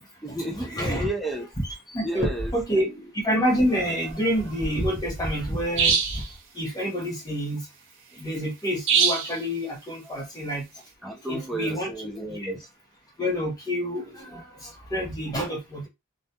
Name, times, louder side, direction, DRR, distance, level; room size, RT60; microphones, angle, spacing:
voice 1, 0.2-1.5 2.0-2.9 3.3-3.4 10.0-10.2 11.0-12.6 14.3-14.4, right 1 dB, ahead, 0.4 m, -33 dB
voice 2, 0.7-1.1 1.9-2.8 3.1-6.2 6.5-7.7 8.2-10.7 11.3-11.9 12.3-12.6 13.2-15.9, equal, 20° left, 0.9 m, -27 dB
sound 1, 5.8-6.3 8.9-9.4, right 6 dB, 60° right, 0.5 m, -21 dB
2.7 x 2.4 x 2.2 m
head